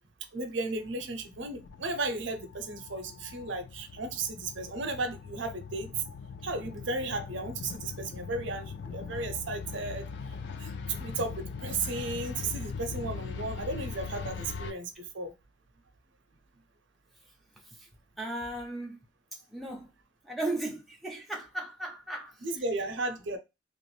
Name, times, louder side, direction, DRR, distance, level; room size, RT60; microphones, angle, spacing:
voice 1, 0.3-5.9 6.4-10.1 10.6-15.3 22.4-23.4, right 2 dB, 70° right, 0.6 m, -35 dB
sound 1, 0.8-14.7, left 5 dB, 60° left, 0.3 m, -41 dB
voice 2, 18.2-19.0 19.5-19.9 20.2-22.3, right 2 dB, ahead, 0.7 m, -36 dB
3.0 x 2.5 x 3.1 m
head